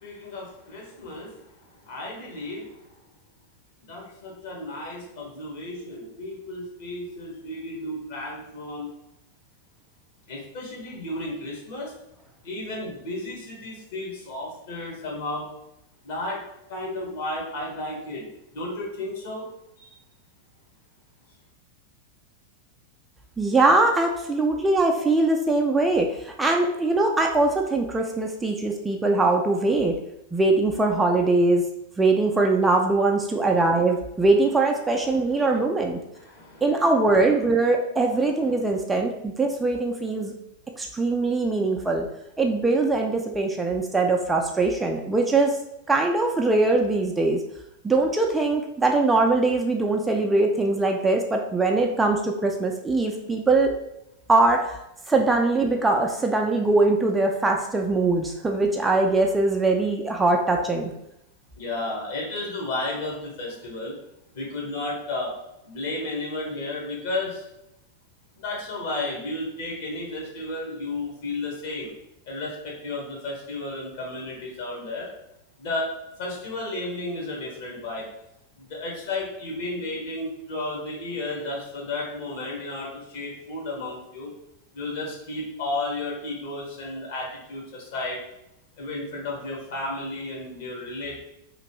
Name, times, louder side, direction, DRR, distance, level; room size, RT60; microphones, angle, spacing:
voice 1, 0.0-1.5 1.8-2.8 3.8-8.9 10.3-11.9 12.4-15.5 16.0-16.4 16.7-18.2 18.5-19.5 19.8-19.9 35.1-35.2 36.2-36.6 61.6-63.9 64.3-65.3 65.6-67.4 68.4-71.9 72.3-75.1 75.6-75.9 76.2-78.1 78.6-84.3 84.7-88.2 88.8-91.2, left 2 dB, 55° left, -2 dB, 1.1 m, -33 dB
voice 2, 23.4-30.0 30.3-31.6 32.0-36.0 36.6-40.3 40.8-42.0 42.4-45.6 45.9-47.4 47.8-53.7 54.3-54.8 55.1-60.9, right 2 dB, 10° right, 2 dB, 0.3 m, -22 dB
3.0 x 2.5 x 2.9 m, 0.84 s
figure-of-eight pair, 90°, 0 cm